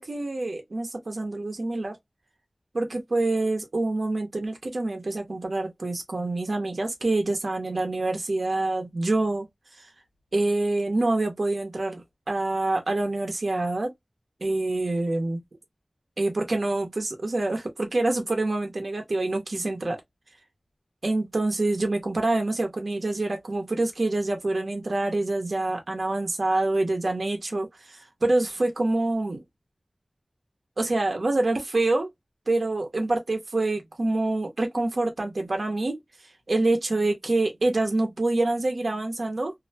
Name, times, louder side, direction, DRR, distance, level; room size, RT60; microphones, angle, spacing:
voice 1, 0.0-2.0 2.7-9.5 9.8-9.9 10.3-13.9 14.4-15.4 16.2-20.0 21.0-29.4 30.8-32.1 32.5-36.0 36.5-39.5, right 2 dB, 80° right, 0.7 m, -26 dB
2.5 x 2.0 x 2.7 m
wide cardioid pair, 45°, 0 cm